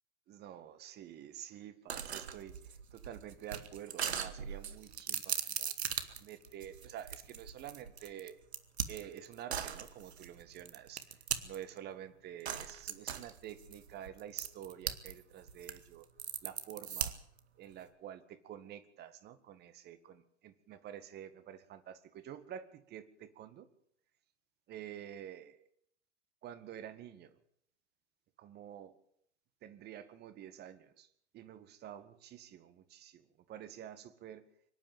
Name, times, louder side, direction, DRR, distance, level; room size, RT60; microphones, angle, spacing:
voice 1, 0.3-5.8 6.2-8.4 8.9-11.0 11.4-16.1 16.4-17.1 17.6-23.7 24.7-25.6 26.4-27.4 28.4-29.0 29.6-31.1 31.3-34.5, right 10 dB, 30° right, 12 dB, 2.0 m, -49 dB
sound 1, 1.9-11.8 12.5-15.1 15.4-17.4, right 8 dB, 65° right, 2.1 m, -39 dB
24.5 x 12.0 x 9.3 m, 0.69 s
figure-of-eight pair, 100°, 34 cm